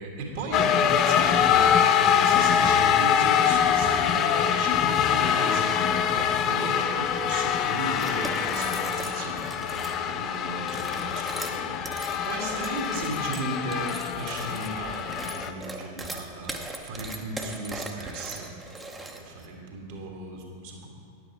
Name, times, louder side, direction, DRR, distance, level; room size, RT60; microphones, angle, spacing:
voice 1, 0.0-11.8 12.3-18.6 19.0-20.9, right 2 dB, 50° right, 0 dB, 1.7 m, -36 dB
sound 1, 0.5-15.5, left 8 dB, 35° left, 0.4 m, -24 dB
sound 2, 8.0-10.0 10.6-19.5, right 2 dB, 10° right, 0.9 m, -39 dB
10.5 x 8.2 x 4.5 m, 2.3 s
figure-of-eight pair, 90°, 0 cm